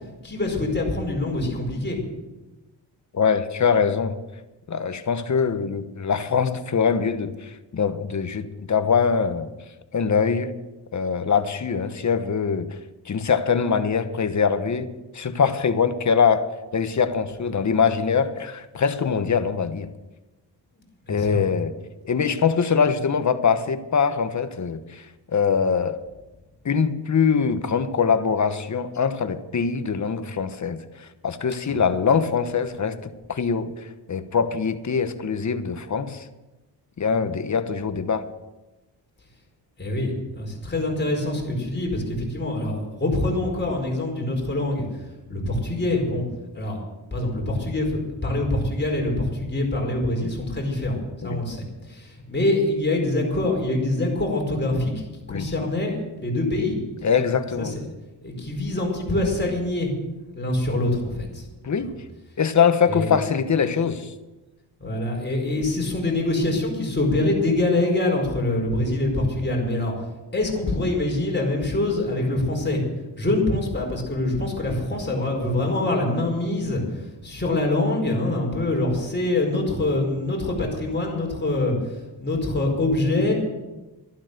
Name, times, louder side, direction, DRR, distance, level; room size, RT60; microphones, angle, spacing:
voice 1, 0.2-2.0 21.1-21.4 39.8-44.8 45.3-46.2 46.5-46.8 47.1-56.7 57.6-57.8 58.2-59.9 60.3-61.5 62.9-63.2 64.8-69.9 70.3-72.8 73.2-81.7 82.2-83.3, left 2 dB, 25° left, 4.7 m, -25 dB
voice 2, 3.1-4.2 4.7-9.5 9.9-10.5 10.9-12.8 13.0-19.9 21.1-21.7 22.0-25.1 25.3-26.0 26.6-36.3 37.0-38.2 51.2-51.4 55.3-55.5 57.0-57.7 61.6-61.9 62.4-64.1, left 6 dB, 40° left, 1.2 m, -23 dB
13.0 x 11.5 x 6.7 m
cardioid pair, 105°, 43 cm